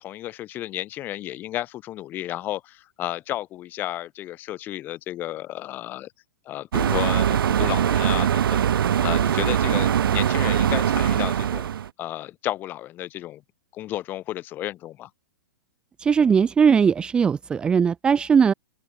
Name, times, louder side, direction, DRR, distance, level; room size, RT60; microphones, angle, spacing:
voice 1, 0.0-6.1 6.4-11.7 12.0-13.4 13.7-15.1, left 14 dB, 15° left, 6.5 m, -32 dB
sound 1, 6.7-11.9, right 9 dB, 85° right, 0.8 m, -22 dB
voice 2, 16.0-18.5, right 6 dB, 10° right, 1.8 m, -19 dB
open air
hypercardioid pair, 180°, 11 cm